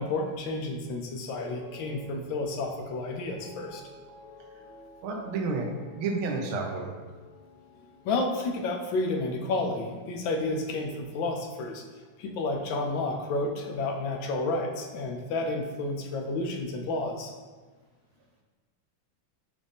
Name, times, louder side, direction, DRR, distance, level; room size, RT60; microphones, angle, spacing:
voice 1, 0.0-3.8 8.0-11.8 12.2-17.3, left 2 dB, 75° left, 2 dB, 1.3 m, -31 dB
sound 1, 1.3-11.7 12.0-12.5, left 1 dB, 55° right, 1.4 m, -51 dB
voice 2, 5.0-6.9, right 3 dB, 90° right, 2 dB, 1.5 m, -31 dB
5.0 x 2.6 x 3.4 m, 1.4 s
omnidirectional pair, 2.2 m